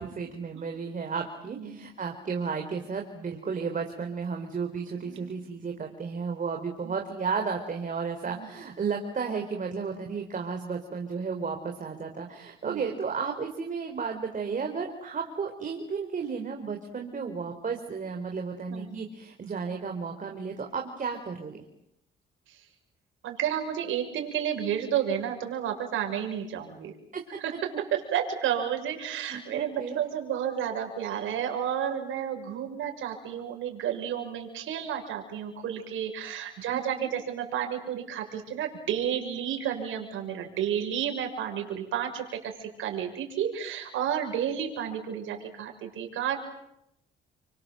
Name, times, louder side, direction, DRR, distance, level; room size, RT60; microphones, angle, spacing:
voice 1, 0.0-21.6 27.1-27.2 29.3-30.0 36.7-37.1, right 5 dB, 40° right, 3 dB, 3.9 m, -33 dB
voice 2, 5.0-5.3 6.8-6.9 8.3-8.5 12.6-12.9 18.7-19.0 22.5-22.6 23.2-26.9 27.4-46.4, right 9 dB, 85° right, 4 dB, 6.5 m, -31 dB
30.0 x 25.5 x 7.8 m, 0.81 s
cardioid pair, 90°, 20 cm